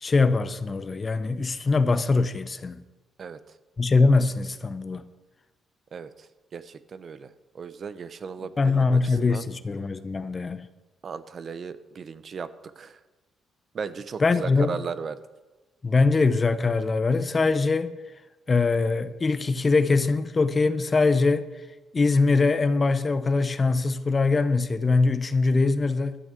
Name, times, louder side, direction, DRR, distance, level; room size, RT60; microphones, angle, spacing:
voice 1, 0.0-2.8 3.8-5.1 8.6-10.7 14.2-14.8 15.8-18.0 18.5-21.4 21.9-26.2, left 3 dB, 30° left, 0.7 m, -22 dB
voice 2, 6.5-9.4 11.0-13.0 13.7-15.2, right 6 dB, 50° right, 0.7 m, -36 dB
12.5 x 6.3 x 8.1 m
cardioid pair, 90°, 0 cm